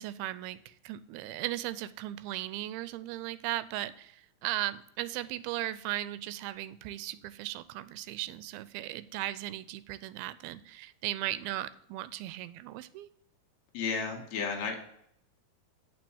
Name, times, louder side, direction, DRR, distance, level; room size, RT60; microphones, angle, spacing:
voice 1, 0.0-13.1, right 15 dB, 90° right, 15 dB, 2.5 m, -37 dB
voice 2, 13.7-14.8, left 5 dB, 60° left, 2 dB, 2.1 m, -33 dB
7.6 x 4.6 x 7.0 m, 0.72 s
omnidirectional pair, 4.3 m